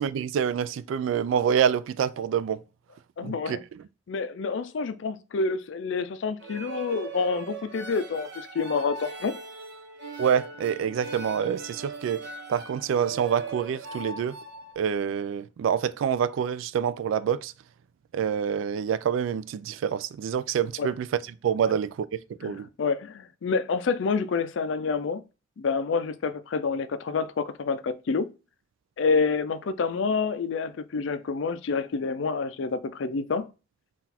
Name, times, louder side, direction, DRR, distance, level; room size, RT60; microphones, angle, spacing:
voice 1, 0.0-2.6 3.2-3.6 10.2-12.2 12.5-14.4 14.8-17.5 18.1-21.1 21.4-22.7, right 8 dB, 80° right, 0.3 m, -27 dB
voice 2, 3.2-3.6 4.1-9.3 20.8-20.9 22.4-25.2 25.6-28.3 29.0-33.5, left 4 dB, 70° left, 0.4 m, -28 dB
sound 1, 6.4-14.7, right 3 dB, 60° right, 0.9 m, -39 dB
3.9 x 2.4 x 4.2 m
head